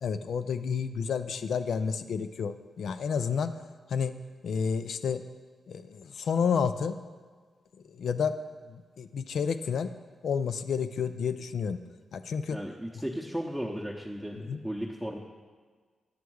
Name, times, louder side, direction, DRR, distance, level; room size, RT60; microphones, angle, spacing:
voice 1, 0.0-3.5 3.9-4.1 4.4-5.2 5.7-7.0 7.9-8.3 8.7-9.9 10.2-11.8 12.1-12.6 14.4-14.6, left 6 dB, 75° left, 10 dB, 0.4 m, -30 dB
voice 2, 12.5-15.2, equal, 5° right, -4 dB, 0.8 m, -35 dB
9.6 x 3.4 x 6.3 m, 1.5 s
cardioid pair, 55°, 0 cm